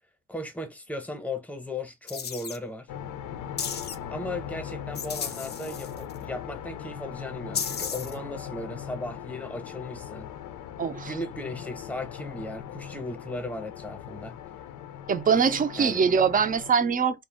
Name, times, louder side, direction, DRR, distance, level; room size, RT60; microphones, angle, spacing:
voice 1, 0.3-2.9 4.1-10.3 11.1-14.4 15.8-16.0, left 2 dB, 5° left, 0.8 m, -36 dB
sound 1, 2.1-2.6 3.6-4.0 4.9-6.2 7.5-8.2, left 6 dB, 35° left, 0.5 m, -34 dB
sound 2, 2.9-16.7, left 9 dB, 85° left, 0.5 m, -39 dB
voice 2, 10.8-11.1 15.1-17.2, right 6 dB, 30° right, 0.4 m, -23 dB
2.3 x 2.1 x 3.3 m
cardioid pair, 90°, 30 cm